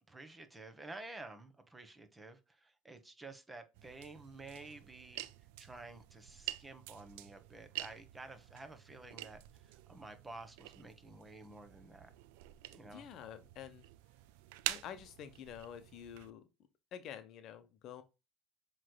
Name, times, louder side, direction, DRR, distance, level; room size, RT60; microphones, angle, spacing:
voice 1, 0.1-5.3 5.6-9.4 9.9-12.1 12.7-13.1, right 2 dB, 15° right, 1.2 m, -51 dB
sound 1, 3.7-16.3, right 17 dB, 80° right, 0.4 m, -47 dB
voice 2, 12.8-13.8 14.7-16.4 16.9-18.0, left 9 dB, 60° left, 0.8 m, -48 dB
7.4 x 3.2 x 2.2 m
hypercardioid pair, 75°, 0 cm